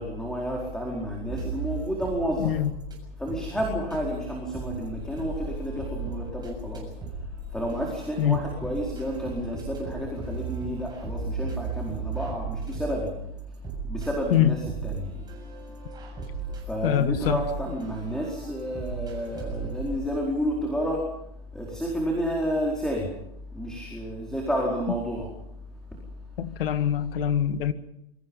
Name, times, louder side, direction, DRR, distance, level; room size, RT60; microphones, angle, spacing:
voice 1, 0.0-2.6 3.2-6.9 7.5-13.1 13.8-15.2 16.5-21.0 21.5-23.1 23.5-25.3, equal, ahead, 4.5 m, -30 dB
sound 1, 1.3-3.0 3.3-20.0, right 3 dB, 15° right, 7.1 m, -36 dB
voice 2, 2.4-2.7 8.2-8.4 14.3-14.6 16.8-17.4 26.4-27.7, left 10 dB, 65° left, 2.0 m, -24 dB
27.5 x 23.5 x 5.6 m
hypercardioid pair, 145°, 31 cm